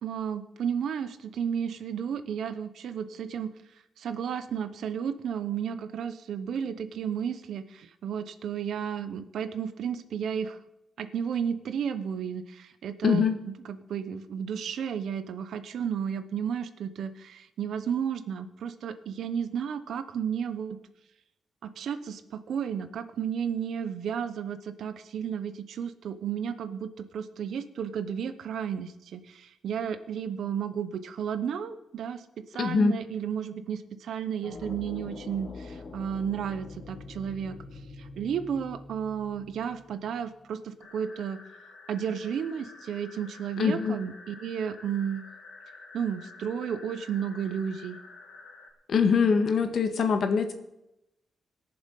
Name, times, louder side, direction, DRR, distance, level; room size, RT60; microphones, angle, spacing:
voice 1, 0.0-3.5 4.0-10.6 11.0-20.8 21.6-32.2 32.5-41.4 41.9-45.3 45.9-48.0, right 8 dB, 75° right, 11 dB, 1.0 m, -33 dB
voice 2, 13.0-13.4 32.6-32.9 43.6-44.0 48.9-50.5, left 5 dB, 60° left, 7 dB, 1.6 m, -23 dB
sound 1, 34.4-40.3, left 3 dB, 35° left, 1.1 m, -44 dB
sound 2, 40.8-48.7, left 3 dB, 75° left, 2.9 m, -49 dB
20.5 x 7.1 x 5.4 m, 0.87 s
wide cardioid pair, 135°, 0 cm